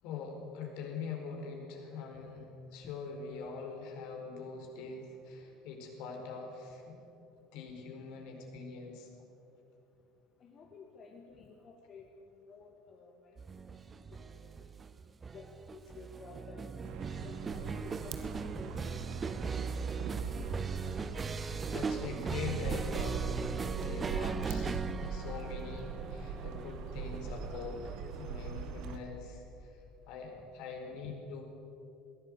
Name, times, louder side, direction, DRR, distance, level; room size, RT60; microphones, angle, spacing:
voice 1, 0.0-7.0 7.5-9.1 21.7-23.3 23.7-31.4, left 5 dB, 60° left, 2 dB, 4.7 m, -43 dB
voice 2, 10.4-13.7 14.1-14.7 15.3-16.7 17.1-20.1 30.4-30.5 31.0-31.1, left 4 dB, 40° left, 1 dB, 2.2 m, -54 dB
sound 1, 13.4-28.4, right 5 dB, 25° right, 0.7 m, -39 dB
sound 2, 16.8-29.0, right 5 dB, 55° right, 1.7 m, -41 dB
22.0 x 16.5 x 7.9 m, 2.9 s
figure-of-eight pair, 65°, 0 cm